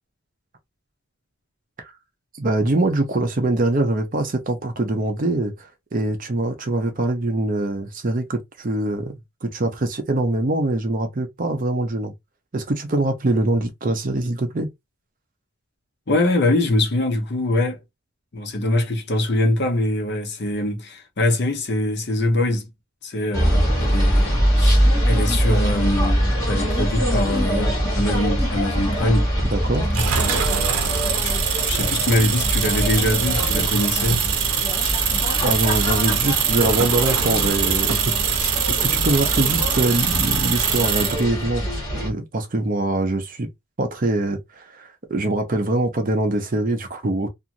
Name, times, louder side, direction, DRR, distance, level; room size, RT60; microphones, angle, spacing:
voice 1, 2.4-12.1 12.5-14.7 29.5-29.9 35.4-41.6 41.9-43.5 43.8-47.3, right 2 dB, 40° right, 0.6 m, -23 dB
voice 2, 16.1-17.8 18.3-22.7 23.0-29.3 29.9-30.4 31.2-31.3 31.6-34.3, left 1 dB, 50° left, 0.7 m, -23 dB
sound 1, 23.3-42.1, equal, 15° left, 1.4 m, -23 dB
sound 2, 29.9-41.2, right 8 dB, 85° right, 0.6 m, -23 dB
2.5 x 2.4 x 2.8 m
head